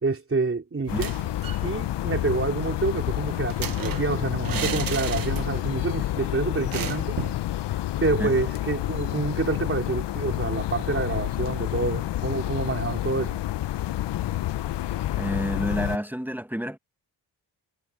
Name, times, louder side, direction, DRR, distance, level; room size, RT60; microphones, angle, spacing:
voice 1, 0.0-1.1 1.6-7.2 8.0-13.4, right 3 dB, 30° right, 3.6 m, -27 dB
sound 1, 0.9-16.0, left 14 dB, 75° left, 0.7 m, -29 dB
sound 2, 0.9-1.7 2.0-2.1 2.3-5.8 6.1-6.2 6.7-7.5, right 9 dB, 55° right, 1.0 m, -34 dB
voice 2, 15.2-16.8, equal, 5° right, 1.2 m, -29 dB
cardioid pair, 100°, 42 cm